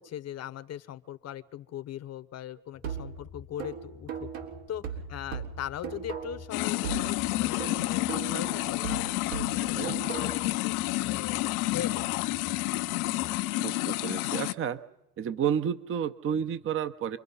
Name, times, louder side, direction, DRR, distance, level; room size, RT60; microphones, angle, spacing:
voice 1, 0.0-4.1 4.7-9.8 10.1-10.7 11.0-11.4 11.7-12.1, left 11 dB, 35° left, 15 dB, 0.9 m, -40 dB
sound 1, 2.7-13.4, left 5 dB, 10° left, 0.7 m, -49 dB
sound 2, 2.8-6.5 6.8-10.5, right 8 dB, 80° right, 3.9 m, -38 dB
sound 3, 6.5-14.5, left 19 dB, 85° left, 0.9 m, -30 dB
voice 2, 9.6-10.0 13.6-14.8 15.2-17.2, right 8 dB, 30° right, 13 dB, 0.8 m, -31 dB
27.5 x 22.0 x 5.6 m, 0.90 s
supercardioid pair, 115°, 42 cm